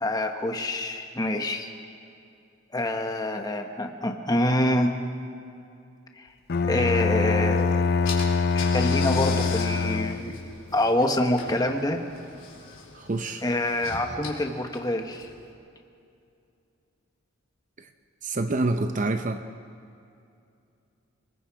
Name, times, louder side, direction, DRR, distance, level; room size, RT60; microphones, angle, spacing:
voice 1, 0.0-1.7 2.7-4.9 6.2-6.3 6.6-7.8 8.5-10.3 10.7-12.0 13.4-15.3, left 1 dB, 20° left, 4 dB, 1.4 m, -26 dB
Bowed string instrument, 6.5-10.5, left 4 dB, 50° left, 0.5 m, -24 dB
Car / Engine, 7.6-7.7 8.0-15.5, left 5 dB, 65° left, 4.2 m, -40 dB
voice 2, 12.9-13.4 17.8-17.9 18.2-19.4, right 2 dB, 40° right, 8 dB, 0.7 m, -27 dB
29.5 x 20.5 x 4.9 m, 2.5 s
head